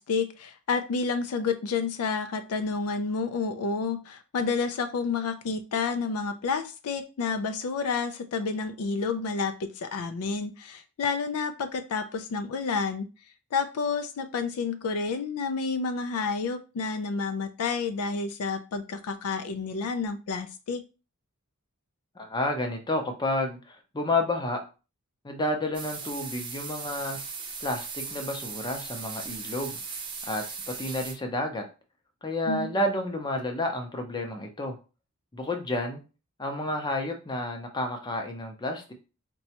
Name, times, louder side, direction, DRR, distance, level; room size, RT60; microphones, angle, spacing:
voice 1, 0.0-13.1 13.5-20.8 32.5-32.7, left 4 dB, 80° left, 9 dB, 0.4 m, -30 dB
voice 2, 22.2-24.6 25.2-27.2 27.6-29.8 30.3-31.6 32.2-34.8 35.3-36.0 36.4-38.9, left 1 dB, 20° left, 4 dB, 0.6 m, -30 dB
sound 1, 25.7-31.1, right 5 dB, 20° right, 0.5 m, -38 dB
4.0 x 2.2 x 2.8 m, 0.32 s
head